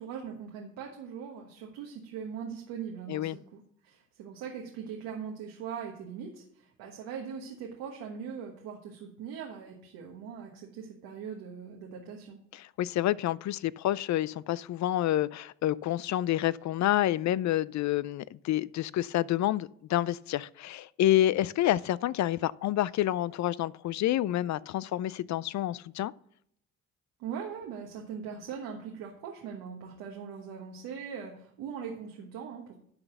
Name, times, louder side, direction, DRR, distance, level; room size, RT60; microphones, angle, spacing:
voice 1, 0.0-12.4 27.2-32.8, right 7 dB, 90° right, 1.3 m, -41 dB
voice 2, 12.8-26.1, left 13 dB, 55° left, 0.5 m, -28 dB
11.5 x 4.1 x 6.7 m
supercardioid pair, 70°, 34 cm